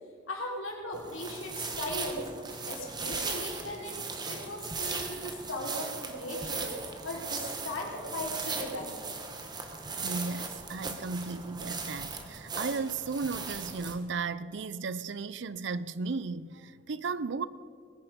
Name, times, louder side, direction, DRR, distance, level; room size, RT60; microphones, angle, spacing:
voice 1, 0.3-2.2 2.5-4.0 4.3-6.7 7.0-9.4 10.8-10.9, left 1 dB, 75° left, 3.5 m, -38 dB
sound 1, 0.9-13.9, right 4 dB, 20° right, 1.1 m, -38 dB
voice 2, 10.0-17.5, right 4 dB, 60° right, 0.5 m, -35 dB
21.0 x 9.9 x 5.2 m
head